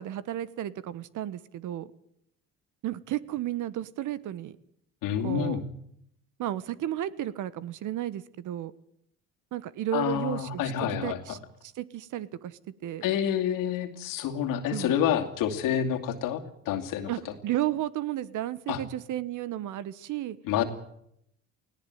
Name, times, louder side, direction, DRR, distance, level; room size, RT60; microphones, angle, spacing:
voice 1, 0.0-1.9 2.8-4.6 5.2-5.6 6.4-8.7 9.5-10.7 11.0-11.4 11.7-13.1 14.7-14.9 17.1-20.4, right 12 dB, 60° right, 17 dB, 1.2 m, -33 dB
voice 2, 5.0-5.6 9.9-11.2 13.0-17.1 18.7-18.8 20.4-20.6, left 9 dB, 70° left, 6 dB, 2.6 m, -28 dB
18.5 x 17.5 x 9.4 m, 0.75 s
supercardioid pair, 75°, 34 cm